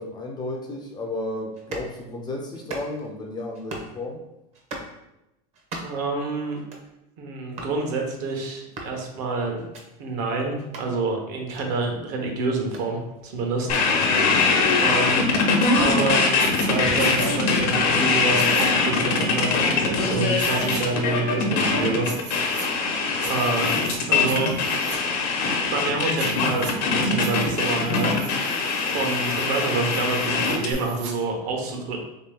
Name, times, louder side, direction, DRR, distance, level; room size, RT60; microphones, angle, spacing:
voice 1, 0.0-4.2 13.7-13.9 23.1-23.4, left 2 dB, 20° left, 1 dB, 0.4 m, -33 dB
sound 1, 1.5-1.9 2.5-3.1 3.5-4.0 4.5-4.9 5.5-6.1 6.5-6.9 7.5-7.8 8.5-9.0 9.6-9.8 10.6-10.9 11.5-11.7 12.6-13.9 14.5-14.8 15.5-15.6, right 2 dB, 30° right, 0.7 m, -39 dB
voice 2, 5.8-6.6 7.2-9.6 10.0-14.3 14.8-15.3 15.7-16.3 16.6-22.1 22.4-22.9 23.3-23.7 24.1-24.6 25.7-32.0, right 3 dB, 60° right, 2 dB, 0.9 m, -28 dB
FM Radio Scrubbing, 13.7-30.7, left 4 dB, 80° left, 0.8 m, -22 dB
sound 2, 16.4-16.7 17.0-17.3 18.3-18.7 20.4-20.8 22.0-22.7 23.2-24.0 24.2-25.0 26.2-26.7 27.2-31.1, right 6 dB, 85° right, 0.7 m, -39 dB
3.1 x 2.9 x 3.5 m, 0.92 s
supercardioid pair, 145°, 21 cm